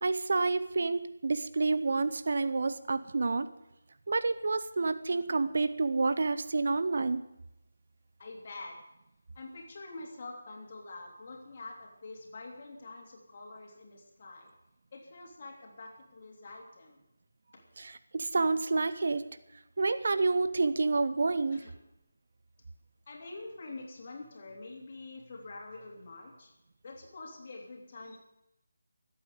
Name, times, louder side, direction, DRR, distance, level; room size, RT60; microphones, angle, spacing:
voice 1, 0.0-3.5 4.1-7.2 17.8-19.2 19.8-21.6, right 3 dB, 50° right, 13 dB, 0.6 m, -29 dB
voice 2, 8.2-8.8 9.3-14.5 14.9-17.0 17.5-17.6 21.5-21.7 23.1-26.5 26.8-28.2, left 2 dB, 35° left, 0 dB, 3.2 m, -46 dB
25.0 x 8.6 x 5.0 m, 0.87 s
figure-of-eight pair, 155°, 0 cm